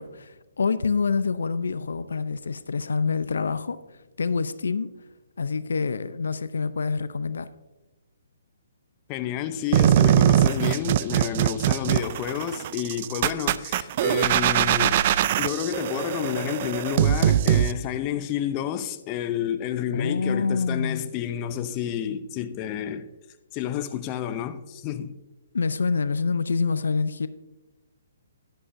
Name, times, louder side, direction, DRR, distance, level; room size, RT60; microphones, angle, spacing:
voice 1, 0.0-4.9 5.4-7.5 19.9-21.1 25.5-27.3, left 5 dB, 80° left, 0.5 m, -26 dB
voice 2, 9.1-15.0 15.4-23.1 23.5-25.2, left 10 dB, 25° left, 0.6 m, -30 dB
sound 1, 9.7-17.7, right 11 dB, 40° right, 0.3 m, -22 dB
11.0 x 11.0 x 2.6 m
hypercardioid pair, 145°, 0 cm